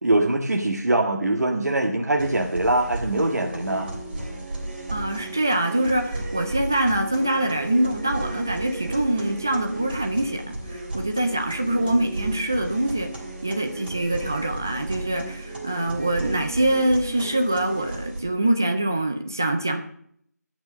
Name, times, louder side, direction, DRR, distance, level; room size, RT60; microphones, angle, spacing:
voice 1, 0.0-3.9, right 2 dB, 65° right, 1 dB, 1.8 m, -23 dB
sound 1, 2.2-18.2, right 2 dB, 30° right, 3.1 m, -34 dB
voice 2, 4.9-13.1 13.4-19.8, right 1 dB, 10° right, 5 dB, 0.4 m, -24 dB
17.0 x 6.1 x 6.3 m, 0.66 s
figure-of-eight pair, 170°, 9 cm